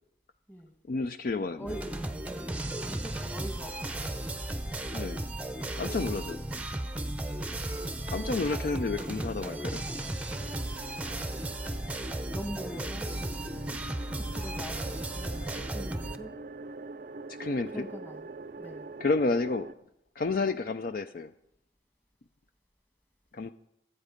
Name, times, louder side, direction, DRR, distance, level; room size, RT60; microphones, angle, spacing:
voice 1, 0.9-1.8 4.9-5.2 5.8-6.4 8.1-9.8 17.3-17.9 19.0-19.7 20.2-21.3 23.3-23.5, left 3 dB, 50° left, 10 dB, 0.4 m, -30 dB
sound 1, 1.7-16.2, right 1 dB, 5° right, 0.6 m, -35 dB
voice 2, 2.3-4.2 7.2-7.4 12.3-13.1 14.0-16.3 17.7-18.3 18.5-18.9, equal, 10° left, 6 dB, 1.4 m, -43 dB
sound 2, 10.3-19.7, right 3 dB, 50° right, 0.5 m, -44 dB
24.5 x 8.2 x 5.1 m, 0.81 s
head